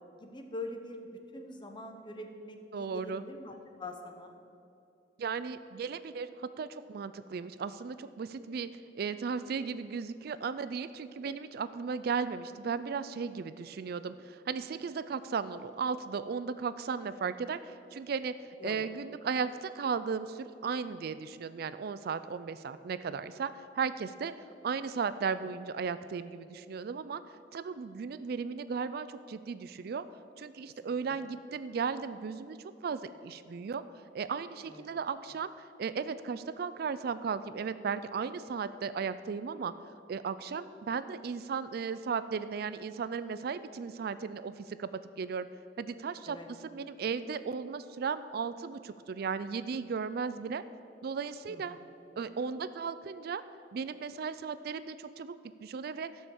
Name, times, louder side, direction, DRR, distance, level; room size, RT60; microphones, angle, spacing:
voice 1, 0.2-4.3 18.6-18.9 30.8-31.2 34.7-34.9 46.3-46.5 51.5-51.8, left 2 dB, 25° left, 4 dB, 1.0 m, -44 dB
voice 2, 2.7-3.2 5.2-18.4 18.6-24.3 24.6-27.2 27.5-30.1 30.4-32.6 32.8-33.8 34.1-35.5 35.8-39.7 40.1-44.9 45.2-45.5 45.8-46.4 46.6-50.6 51.0-51.8 52.2-53.4 53.7-56.1, right 5 dB, 60° right, 13 dB, 0.4 m, -35 dB
13.0 x 6.4 x 7.1 m, 2.6 s
head